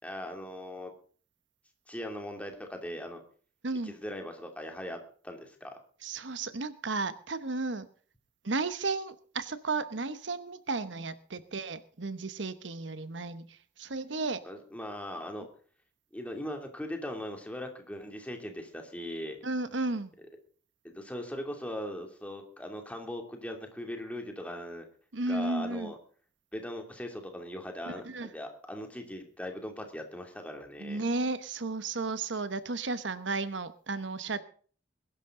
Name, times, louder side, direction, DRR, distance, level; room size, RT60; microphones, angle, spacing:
voice 1, 0.0-0.9 1.9-3.2 3.8-5.0 5.2-5.7 14.4-15.5 16.1-19.4 20.8-24.8 25.3-26.0 26.5-31.0, left 1 dB, 10° left, 3 dB, 2.7 m, -39 dB
voice 2, 3.6-3.9 6.0-7.9 8.4-14.4 19.4-20.1 25.1-25.9 27.8-28.3 30.8-34.4, right 3 dB, 80° right, 13 dB, 1.1 m, -33 dB
21.5 x 11.5 x 3.8 m, 0.43 s
head